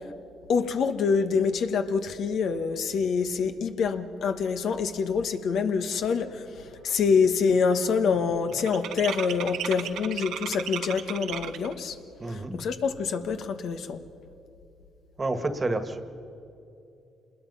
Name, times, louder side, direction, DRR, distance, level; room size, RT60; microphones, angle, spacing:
voice 1, 0.5-6.4 6.8-12.0 12.3-14.0, left 5 dB, 70° left, 8 dB, 1.3 m, -26 dB
sound 1, 6.5-6.9 7.2-11.8, right 10 dB, 80° right, 1.0 m, -36 dB
voice 2, 12.2-12.6 15.2-16.0, right 2 dB, 25° right, 9 dB, 1.6 m, -29 dB
26.5 x 21.0 x 5.6 m, 2.8 s
cardioid pair, 90°, 0 cm